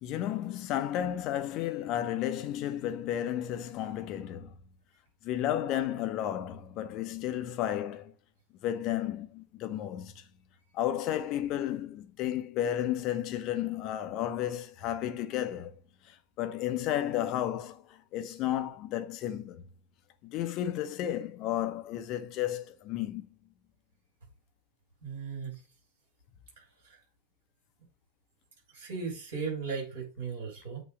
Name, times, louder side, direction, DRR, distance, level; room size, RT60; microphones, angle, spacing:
voice 1, 0.0-4.5 5.2-8.1 8.6-10.1 10.7-15.7 16.4-17.8 18.1-19.6 20.2-23.3, left 11 dB, 40° left, 0.8 m, -32 dB
voice 2, 25.0-25.6 28.7-30.8, right 5 dB, 60° right, 4.3 m, -36 dB
8.2 x 3.1 x 5.1 m
figure-of-eight pair, 90°, 0 cm